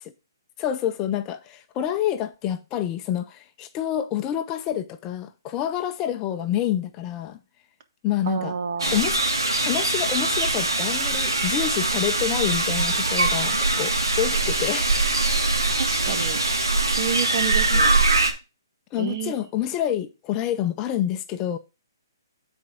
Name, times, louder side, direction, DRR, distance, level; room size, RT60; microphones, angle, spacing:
voice 1, 0.6-7.4 8.0-8.5 8.9-9.2 9.6-14.9 16.1-16.2 17.7-17.8 18.9-21.6, left 11 dB, 25° left, 0.6 m, -27 dB
voice 2, 8.2-9.0 15.8-16.4 17.0-18.0 19.0-19.3, right 7 dB, 45° right, 1.5 m, -29 dB
sound 1, 8.8-18.3, right 2 dB, 90° right, 1.7 m, -22 dB
9.5 x 4.4 x 5.0 m
hypercardioid pair, 140°, 2 cm